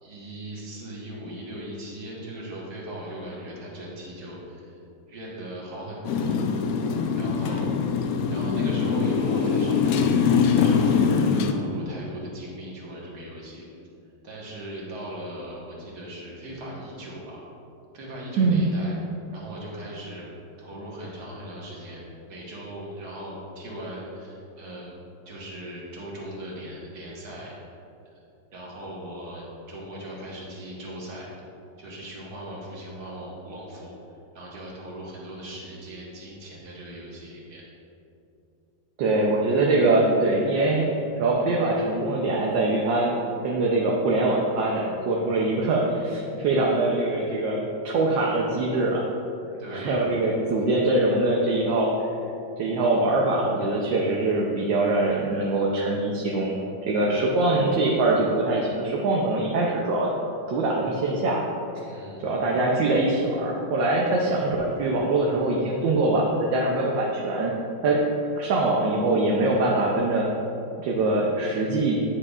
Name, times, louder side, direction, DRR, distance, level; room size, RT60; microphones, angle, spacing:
voice 1, 0.0-4.7 5.1-6.3 7.2-7.7 8.3-13.6 14.2-17.4 17.9-18.9 19.3-20.3 20.6-24.9 25.3-27.5 28.5-31.3 31.8-33.9 34.3-37.6 49.6-50.0 61.8-62.2, right 1 dB, 55° right, -5 dB, 1.9 m, -39 dB
Motorcycle, 6.0-11.5, left 6 dB, 85° left, 0.7 m, -23 dB
voice 2, 18.4-18.7 39.0-40.9 41.2-49.1 49.7-51.9 52.6-56.6 56.9-60.1 60.5-61.4 61.7-61.8 62.2-67.5 67.8-68.0 68.4-70.3 70.8-72.0, right 2 dB, 75° right, -2 dB, 1.4 m, -23 dB
9.8 x 6.7 x 2.4 m, 2.7 s
omnidirectional pair, 2.1 m